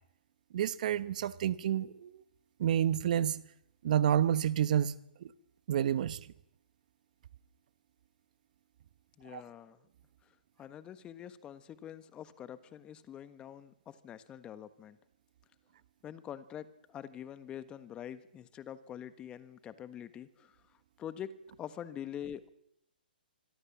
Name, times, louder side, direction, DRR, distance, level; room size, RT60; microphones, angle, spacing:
voice 1, 0.5-2.2 2.6-3.4 3.8-4.9 5.2-5.3 5.7-6.2 9.3-9.4, right 10 dB, 50° right, 1.2 m, -29 dB
voice 2, 9.2-9.8 10.6-15.0 16.0-20.6 21.0-21.3 21.6-22.5, left 10 dB, 20° left, 1.5 m, -45 dB
26.0 x 22.5 x 7.4 m
hypercardioid pair, 140°, 5 cm